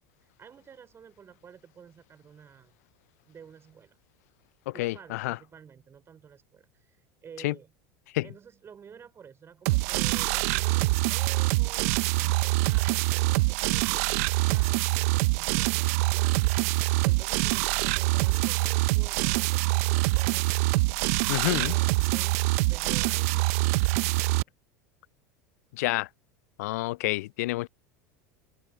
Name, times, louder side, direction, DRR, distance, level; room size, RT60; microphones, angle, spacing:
voice 1, 0.4-2.7 3.3-4.0 4.7-7.7 8.2-20.5 21.4-24.0, right 7 dB, 30° right, 3.9 m, -51 dB
voice 2, 4.7-5.4 7.4-7.5 8.1-8.3 21.3-21.7 25.8-26.1 26.6-27.7, left 19 dB, 70° left, 0.4 m, -28 dB
sound 1, 9.7-24.4, right 23 dB, 65° right, 0.7 m, -25 dB
hypercardioid pair, 85°, 9 cm